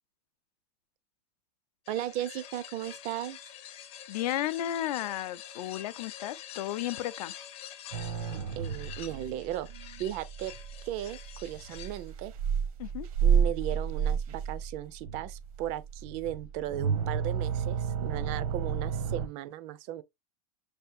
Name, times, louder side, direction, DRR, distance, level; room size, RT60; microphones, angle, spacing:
sound 1, 1.8-12.1, left 10 dB, 30° left, 0.5 m, -47 dB
voice 1, 1.9-3.4 8.6-9.7 10.0-10.5 10.8-12.3 13.2-20.0, right 12 dB, 35° right, 0.4 m, -36 dB
voice 2, 4.1-7.3 12.8-13.1, left 13 dB, 80° left, 0.5 m, -33 dB
sound 2, 7.9-19.3, right 7 dB, 65° right, 0.8 m, -31 dB
5.0 x 3.4 x 2.6 m
supercardioid pair, 160°, 20 cm